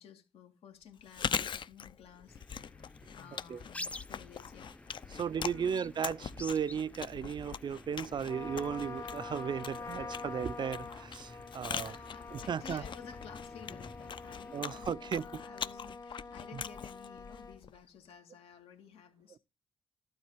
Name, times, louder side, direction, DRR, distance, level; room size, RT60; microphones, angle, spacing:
voice 1, 0.0-4.8 5.2-5.8 11.8-19.4, left 7 dB, 80° left, 2.1 m, -54 dB
Chewing mastication, 1.0-17.9, left 7 dB, 55° left, 0.7 m, -42 dB
sound 1, 2.3-14.8, left 2 dB, 15° left, 0.6 m, -50 dB
voice 2, 5.1-12.0 12.3-12.8 14.5-15.4 16.5-16.6, right 7 dB, 50° right, 0.5 m, -35 dB
Trumpet, 8.3-17.6, left 4 dB, 40° left, 1.8 m, -46 dB
12.0 x 4.1 x 7.1 m
cardioid pair, 65°, 10 cm